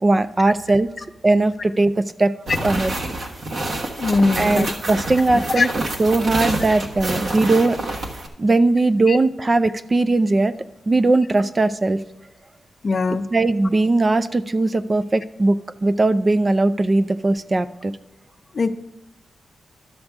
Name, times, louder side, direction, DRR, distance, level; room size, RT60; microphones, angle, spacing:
voice 1, 0.0-0.9 1.2-2.3 2.6-3.0 4.4-5.7 6.0-7.9 8.4-10.5 10.9-12.0 13.3-17.9, right 2 dB, 25° right, 13 dB, 0.3 m, -19 dB
sound 1, 2.5-8.3, right 2 dB, 55° right, 1.3 m, -27 dB
voice 2, 4.0-4.7 5.6-5.7 9.1-9.2 12.8-13.3 18.5-18.7, left 3 dB, 40° left, 9 dB, 0.5 m, -20 dB
12.5 x 6.6 x 3.5 m, 0.93 s
wide cardioid pair, 135°, 0 cm